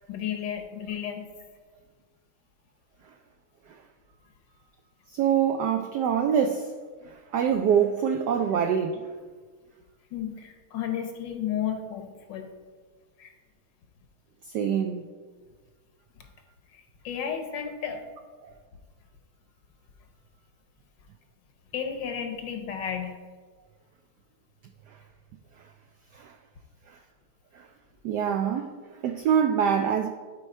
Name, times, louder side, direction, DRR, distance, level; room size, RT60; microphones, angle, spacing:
voice 1, 0.1-1.3 10.1-12.5 13.2-13.3 16.2-16.3 16.7-18.0 21.7-23.2, left 8 dB, 65° left, 1.3 m, -33 dB
voice 2, 5.1-6.7 7.1-9.0 14.5-15.1 26.1-26.3 27.5-27.6 28.0-28.7 29.0-30.1, right 8 dB, 90° right, 0.9 m, -24 dB
11.5 x 4.6 x 4.3 m
omnidirectional pair, 2.3 m